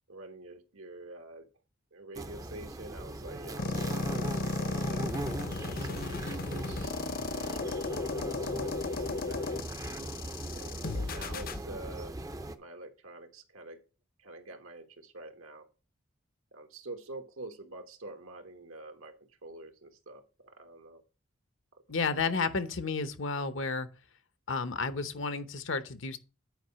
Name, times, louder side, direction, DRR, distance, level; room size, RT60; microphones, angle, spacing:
voice 1, 0.1-1.5 1.9-5.1 5.6-6.9 7.3-9.6 10.5-12.2 12.5-13.8 14.2-15.7 16.5-21.0 21.7-21.8 22.2-22.3, right 2 dB, 85° right, 1.3 m, -47 dB
sound 1, 2.1-12.5, right 1 dB, 15° right, 0.5 m, -39 dB
sound 2, 3.6-11.6, left 3 dB, 45° left, 0.6 m, -35 dB
voice 2, 21.9-23.9 24.5-26.2, left 4 dB, 65° left, 0.9 m, -32 dB
9.3 x 4.8 x 5.7 m
head